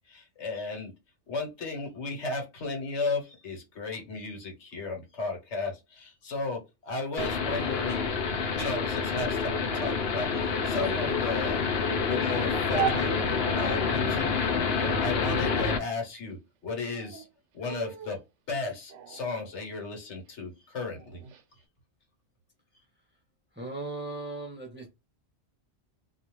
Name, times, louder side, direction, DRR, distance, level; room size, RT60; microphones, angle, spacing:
voice 1, 0.1-0.9 1.3-8.1 8.5-11.7 12.0-13.2 13.5-14.5 14.8-16.4 16.6-17.2 17.5-18.2 18.5-21.2, left 3 dB, 90° left, 1.3 m, -34 dB
sound 1, 7.2-15.8, left 5 dB, 65° left, 0.8 m, -28 dB
sound 2, 12.7-14.0 14.8-16.0 16.8-17.3 17.6-18.2 18.9-20.2 21.0-21.4, right 10 dB, 90° right, 0.9 m, -37 dB
voice 2, 23.6-24.9, right 3 dB, 15° right, 0.5 m, -37 dB
2.4 x 2.3 x 3.0 m
omnidirectional pair, 1.2 m